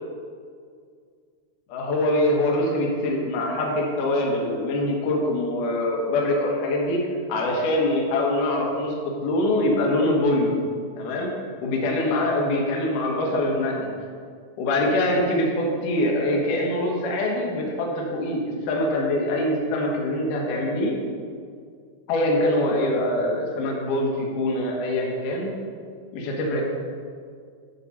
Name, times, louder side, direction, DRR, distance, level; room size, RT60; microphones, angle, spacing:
voice 1, 1.7-7.0 7.3-9.0 9.2-10.5 11.0-11.3 11.6-13.9 14.6-21.0 22.1-25.5 26.1-26.6, left 1 dB, 65° left, -1 dB, 2.6 m, -24 dB
9.5 x 6.0 x 5.7 m, 2.1 s
omnidirectional pair, 4.4 m